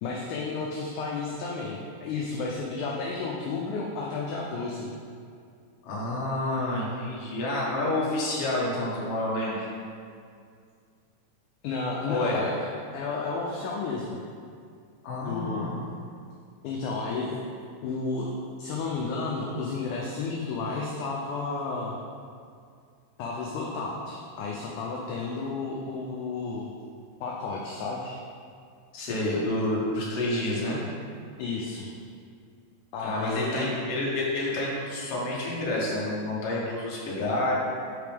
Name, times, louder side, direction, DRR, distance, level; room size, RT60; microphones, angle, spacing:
voice 1, 0.0-4.9 11.6-14.2 15.2-15.7 16.6-17.5 17.8-18.3 18.6-22.0 23.2-26.7 27.2-28.2 31.4-31.9 32.9-33.8, left 4 dB, 80° left, -2 dB, 1.8 m, -32 dB
voice 2, 5.8-9.7 12.0-12.4 15.0-15.9 28.9-30.8 33.0-37.5, left 1 dB, 55° left, -6 dB, 1.9 m, -29 dB
8.3 x 4.1 x 3.5 m, 2.3 s
omnidirectional pair, 4.0 m